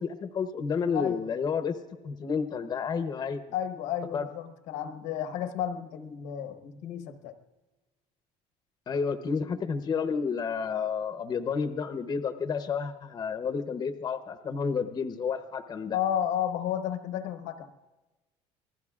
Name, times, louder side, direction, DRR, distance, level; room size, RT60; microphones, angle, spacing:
voice 1, 0.0-1.8 2.0-3.4 4.1-4.3 8.9-16.0, left 6 dB, 30° left, 9 dB, 0.8 m, -30 dB
voice 2, 0.9-1.3 3.5-7.3 15.9-17.7, left 9 dB, 80° left, 9 dB, 1.1 m, -32 dB
27.5 x 19.5 x 2.4 m, 1.1 s
cardioid pair, 130°, 13 cm